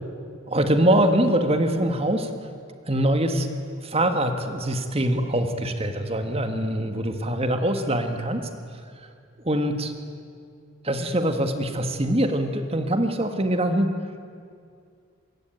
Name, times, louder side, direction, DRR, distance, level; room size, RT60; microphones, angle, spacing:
voice 1, 0.5-2.3 2.9-3.5 3.8-8.5 9.4-9.9 10.8-13.9, right 1 dB, 30° right, 7 dB, 1.9 m, -23 dB
26.5 x 22.0 x 9.2 m, 2.3 s
head